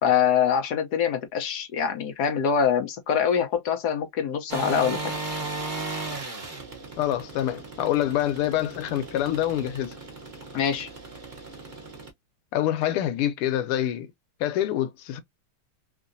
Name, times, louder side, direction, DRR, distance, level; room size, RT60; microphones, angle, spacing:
voice 1, 0.0-5.1 10.5-10.9, left 7 dB, 65° left, 1.1 m, -24 dB
sound 1, 4.5-12.1, right 3 dB, 60° right, 0.5 m, -36 dB
voice 2, 7.0-10.0 12.5-14.1 14.4-15.2, left 12 dB, 90° left, 1.6 m, -26 dB
3.6 x 2.7 x 2.6 m
omnidirectional pair, 2.4 m